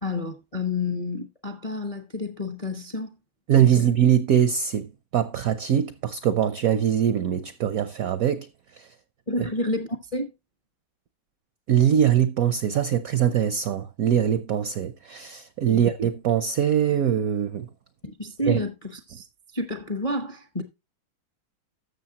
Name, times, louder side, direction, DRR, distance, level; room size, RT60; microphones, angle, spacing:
voice 1, 0.0-3.1 3.6-3.8 9.3-10.3 15.7-15.8 18.0-19.3 19.5-20.6, left 2 dB, 40° left, 0.5 m, -30 dB
voice 2, 3.5-8.5 8.8-8.9 9.4-9.5 11.7-17.7 18.5-18.6, right 9 dB, 75° right, 0.8 m, -22 dB
13.0 x 7.1 x 2.9 m
omnidirectional pair, 2.2 m